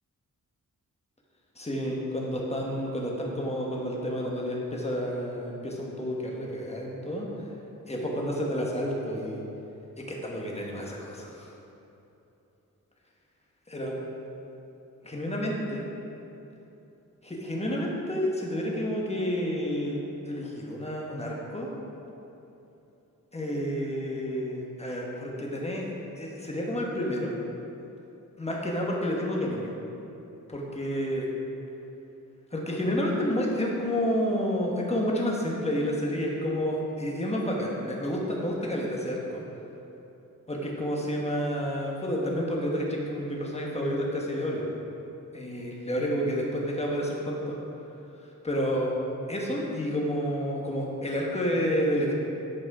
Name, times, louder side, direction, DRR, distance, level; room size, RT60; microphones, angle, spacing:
voice 1, 1.6-7.3 7.9-9.5 10.0-11.5 13.7-13.9 15.0-15.9 17.2-20.0 20.3-21.7 23.3-25.9 26.2-27.3 28.4-29.7 30.5-31.3 32.5-39.4 40.5-44.7 45.3-47.6 48.4-48.9 49.3-52.1, equal, 20° left, -2 dB, 1.3 m, -30 dB
8.7 x 5.3 x 4.8 m, 2.9 s
wide cardioid pair, 110°, 34 cm